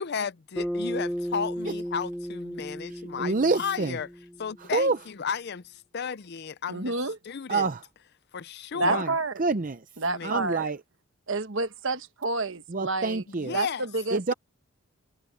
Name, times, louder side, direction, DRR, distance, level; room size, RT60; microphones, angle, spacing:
voice 1, 0.0-4.1 4.4-6.9 7.2-7.7 8.3-9.1 10.0-10.7 13.3-13.9, left 6 dB, 50° left, 0.5 m, -34 dB
Bass guitar, 0.6-5.0, equal, ahead, 1.7 m, -34 dB
voice 2, 2.9-4.0 4.6-5.0 7.5-7.8 8.8-9.1 9.4-9.8 10.2-10.8 12.7-13.6 14.1-14.3, right 3 dB, 35° right, 0.6 m, -27 dB
voice 3, 6.7-7.2 8.7-9.3 10.0-10.7 11.3-13.2 13.5-14.3, right 3 dB, 55° right, 1.3 m, -29 dB
head